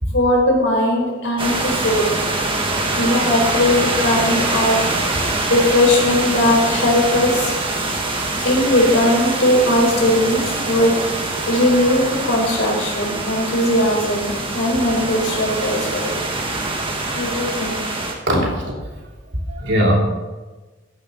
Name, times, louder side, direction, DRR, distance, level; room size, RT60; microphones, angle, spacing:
voice 1, 0.1-2.2 3.0-4.8 5.5-7.5 8.4-10.9 11.5-16.1 17.1-17.8, left 1 dB, 75° left, -1 dB, 4.5 m, -18 dB
sound 1, 1.4-18.1, right 2 dB, 25° right, 1.6 m, -24 dB
voice 2, 16.9-17.2 18.3-18.7 19.5-20.0, equal, 65° right, -2 dB, 3.4 m, -21 dB
14.0 x 10.5 x 4.0 m, 1.2 s
head